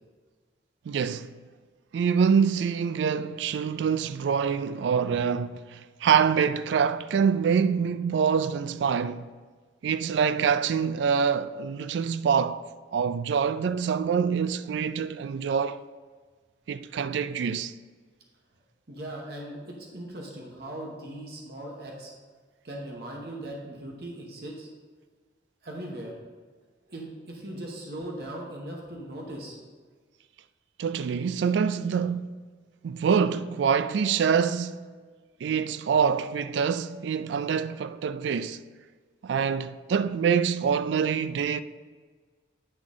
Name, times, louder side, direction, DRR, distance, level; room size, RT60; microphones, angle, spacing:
voice 1, 0.9-1.3 1.9-9.2 9.8-12.6 12.9-15.8 16.7-17.7 30.8-32.3 32.8-34.8 35.4-38.6 39.2-41.6, right 6 dB, 85° right, 0.3 m, -25 dB
voice 2, 18.9-22.1 22.6-24.7 25.6-26.1 26.9-29.6, right 1 dB, 60° right, 1.1 m, -39 dB
9.8 x 3.9 x 3.6 m
head